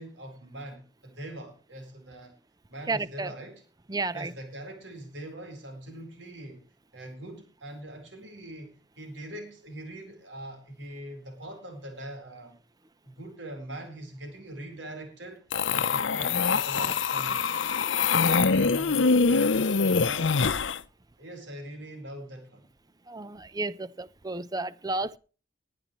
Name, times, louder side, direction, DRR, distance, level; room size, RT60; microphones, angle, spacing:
voice 1, 0.0-2.3 2.7-3.6 4.1-6.6 6.9-12.6 13.0-15.4 15.7-17.6 18.3-20.4 21.2-22.7, right 1 dB, 80° right, 4.2 m, -42 dB
voice 2, 2.9-3.3 3.9-4.3 18.2-18.5 23.1-25.2, right 3 dB, 20° right, 0.7 m, -32 dB
sound 1, 15.5-20.8, left 5 dB, 85° left, 0.7 m, -24 dB
20.5 x 10.5 x 3.1 m
head